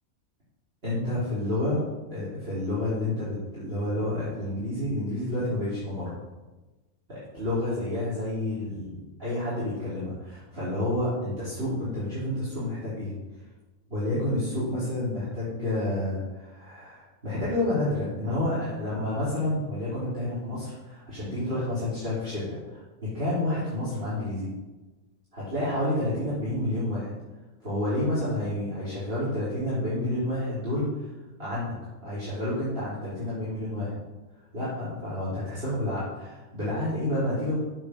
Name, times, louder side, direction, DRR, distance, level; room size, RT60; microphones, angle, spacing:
voice 1, 0.8-1.8 2.1-6.1 7.1-13.1 13.9-24.5 25.3-27.1 27.6-31.1 31.4-31.7 32.0-33.9 34.5-37.6, left 1 dB, 40° right, -11 dB, 3.5 m, -29 dB
7.4 x 6.9 x 6.4 m, 1.1 s
omnidirectional pair, 1.5 m